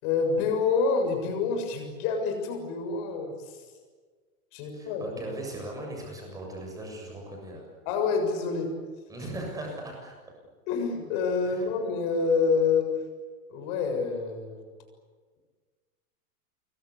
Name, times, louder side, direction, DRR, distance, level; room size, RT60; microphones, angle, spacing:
voice 1, 0.0-3.6 4.5-5.0 7.9-8.7 10.7-12.9 13.5-14.7, left 5 dB, 35° left, 5 dB, 7.0 m, -27 dB
voice 2, 4.7-7.7 9.1-10.1 11.4-11.7, right 1 dB, 10° right, 0 dB, 7.3 m, -38 dB
26.5 x 23.5 x 8.4 m, 1.5 s
supercardioid pair, 170°, 45 cm